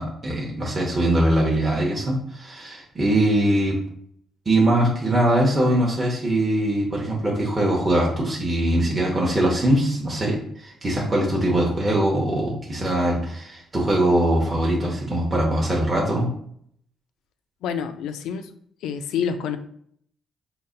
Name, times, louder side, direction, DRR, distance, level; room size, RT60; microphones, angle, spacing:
voice 1, 0.0-3.8 4.5-16.3, right 1 dB, 25° right, -3 dB, 0.9 m, -22 dB
voice 2, 17.6-18.5 18.8-19.6, left 7 dB, 85° left, 9 dB, 0.3 m, -27 dB
4.0 x 2.1 x 3.8 m, 0.66 s
cardioid pair, 90°, 0 cm